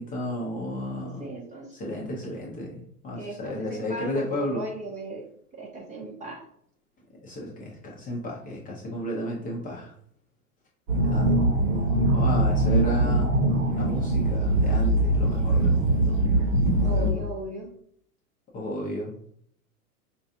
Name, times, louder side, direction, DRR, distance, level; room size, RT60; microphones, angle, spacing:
voice 1, 0.0-1.3 1.7-4.6 7.2-9.9 11.0-11.4 12.1-13.4 13.7-16.2 16.7-17.2 18.5-19.1, left 1 dB, 20° left, -3 dB, 0.7 m, -33 dB
voice 2, 1.0-1.7 3.2-5.2 5.5-6.4 14.2-14.3 16.8-17.7, right 2 dB, 15° right, 0 dB, 0.8 m, -37 dB
sound 1, 10.9-17.1, right 1 dB, 60° right, 1.1 m, -22 dB
4.5 x 2.4 x 2.7 m, 0.62 s
hypercardioid pair, 115°, 46 cm